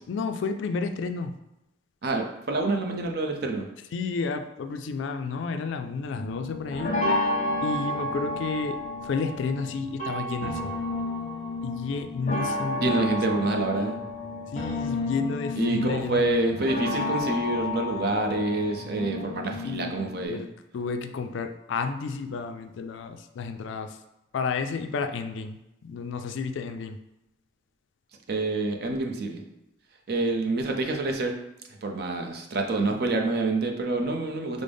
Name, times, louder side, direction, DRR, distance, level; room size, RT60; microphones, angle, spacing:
voice 1, 0.1-1.3 3.9-7.0 7.6-10.7 11.6-13.1 14.5-16.4 19.6-20.0 20.2-20.5 20.7-24.0 24.3-27.0, left 4 dB, 65° left, 8 dB, 0.3 m, -31 dB
voice 2, 2.0-3.6 12.8-14.0 15.6-20.4 28.3-29.4 30.1-31.3 31.8-34.6, right 2 dB, 50° right, 3 dB, 0.5 m, -27 dB
sound 1, 6.1-20.3, left 2 dB, 40° left, 0.7 m, -31 dB
5.2 x 2.0 x 3.4 m, 0.89 s
head